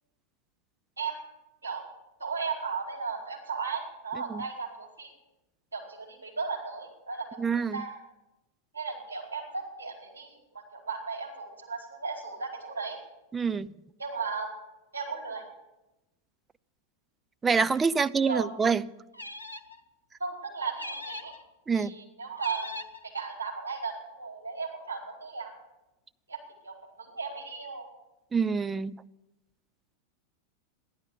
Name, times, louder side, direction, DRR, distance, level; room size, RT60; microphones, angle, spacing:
voice 1, 1.0-1.3 1.6-1.9 2.2-5.1 5.7-7.9 8.7-13.0 14.0-14.5 14.9-15.4 18.3-18.5 20.2-21.3 21.7-25.5 26.3-27.8, right 5 dB, 70° right, 4.5 m, -36 dB
voice 2, 7.4-7.8 13.3-13.7 17.4-18.8 21.7-21.9 28.3-29.0, right 5 dB, 15° right, 0.5 m, -26 dB
sound 1, 19.1-19.8 20.8-21.4 22.4-23.0, left 1 dB, 85° left, 0.8 m, -40 dB
14.5 x 11.5 x 8.2 m
figure-of-eight pair, 90°, 0 cm